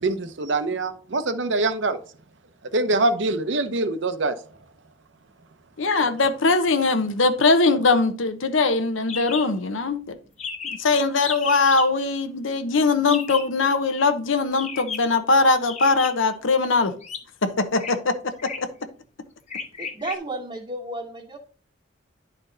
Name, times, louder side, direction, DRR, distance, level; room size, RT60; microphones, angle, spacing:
voice 1, 0.0-2.0 2.7-4.4, right 2 dB, 70° right, 0.8 m, -24 dB
voice 2, 5.8-10.1 10.8-16.9 17.4-18.7, left 3 dB, 90° left, 0.8 m, -21 dB
sound 1, 9.1-9.5 9.8-9.9 10.1-10.2 10.4-10.9 11.2-11.9 13.1-13.5 14.5-15.1 15.7-16.3 17.0-17.2 17.7-17.9 18.4-18.7 19.5-20.2, left 6 dB, 35° left, 0.9 m, -33 dB
voice 3, 19.8-21.4, right 2 dB, 25° right, 0.9 m, -33 dB
10.5 x 4.4 x 3.9 m
head